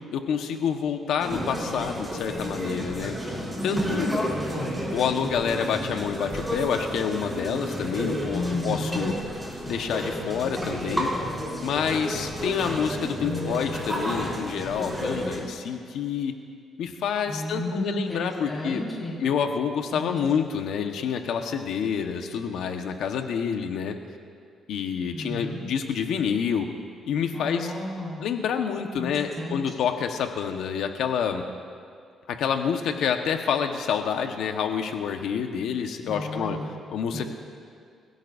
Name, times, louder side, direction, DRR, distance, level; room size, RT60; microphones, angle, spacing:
voice 1, 0.0-3.1 3.6-4.1 4.9-9.1 9.7-11.1 11.6-16.4 16.8-18.8 19.2-24.0 24.7-26.7 27.1-27.7 28.2-31.4 32.3-36.6 36.9-37.2, left 7 dB, 80° left, 4 dB, 1.4 m, -28 dB
sound 1, 1.2-15.4, equal, 10° right, 4.5 m, -31 dB
voice 2, 3.5-4.8 8.3-9.1 13.2-13.8 17.3-19.2 19.9-20.2 25.1-25.6 27.3-28.2 29.0-29.6 36.0-36.7 37.1-37.2, left 1 dB, 20° left, -5 dB, 4.9 m, -32 dB
26.5 x 16.5 x 2.8 m, 2.3 s
cardioid pair, 90°, 0 cm